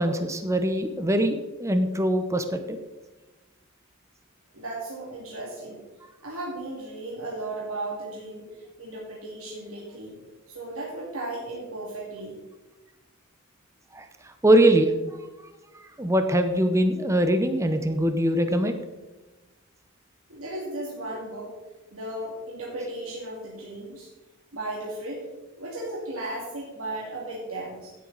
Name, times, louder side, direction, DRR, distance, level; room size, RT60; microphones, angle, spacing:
voice 1, 0.0-2.8 13.9-14.9 16.0-18.7, right 1 dB, 15° right, 7 dB, 0.8 m, -22 dB
voice 2, 4.5-5.8 6.2-10.2 10.5-12.4 20.3-21.5 21.9-24.1 24.5-25.2 25.6-27.9, right 1 dB, 80° right, -4 dB, 2.5 m, -35 dB
16.5 x 8.1 x 4.0 m, 1.2 s
head